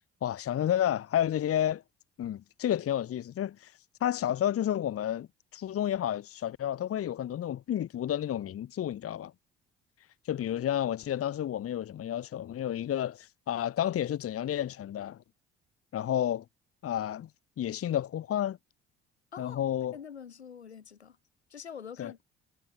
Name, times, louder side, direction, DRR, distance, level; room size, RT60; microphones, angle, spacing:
voice 1, 0.2-1.8 2.2-5.3 5.5-9.3 10.2-15.2 15.9-16.4 16.8-17.3 17.6-18.6 19.4-20.0 22.0-22.1, left 11 dB, 45° left, 1.1 m, -31 dB
voice 2, 19.3-19.6 19.9-21.2 21.5-22.2, left 7 dB, 90° left, 5.4 m, -45 dB
hypercardioid pair, 50°, 32 cm